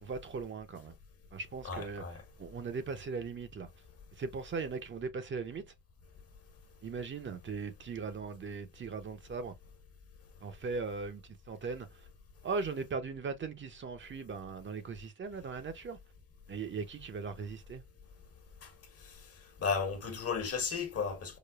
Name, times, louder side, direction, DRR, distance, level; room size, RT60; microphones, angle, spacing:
voice 1, 0.0-0.9 1.3-3.7 4.2-5.6 6.8-9.5 10.4-12.1 12.4-16.0 16.5-17.8, right 4 dB, 40° right, 0.6 m, -39 dB
voice 2, 1.6-2.2 18.6-18.7 19.6-21.4, left 5 dB, 50° left, 1.2 m, -34 dB
4.9 x 2.2 x 2.3 m
cardioid pair, 90°, 30 cm